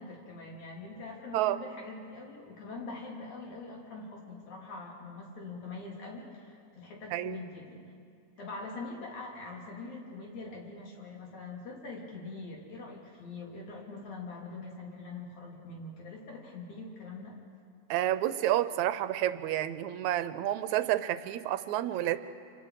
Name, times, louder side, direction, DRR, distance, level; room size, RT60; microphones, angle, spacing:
voice 1, 0.0-7.8 8.4-17.4, left 3 dB, 70° left, -2 dB, 4.6 m, -43 dB
voice 2, 17.9-22.2, right 13 dB, 75° right, 13 dB, 2.0 m, -29 dB
28.5 x 25.5 x 4.9 m, 2.3 s
omnidirectional pair, 3.5 m